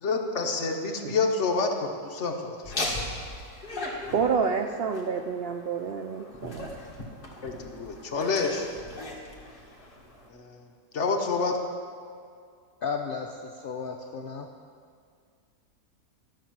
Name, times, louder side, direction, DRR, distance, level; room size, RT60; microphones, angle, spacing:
voice 1, 0.0-2.7 7.4-8.7 10.3-10.4 10.9-11.6, left 4 dB, 50° left, 3 dB, 1.2 m, -28 dB
Laughter, 2.6-10.3, left 2 dB, 35° left, 1.6 m, -38 dB
voice 2, 4.1-6.7, right 6 dB, 85° right, 5 dB, 0.5 m, -28 dB
voice 3, 12.8-14.5, left 5 dB, 75° left, 2 dB, 0.5 m, -34 dB
13.0 x 5.8 x 7.3 m, 2.2 s
omnidirectional pair, 1.7 m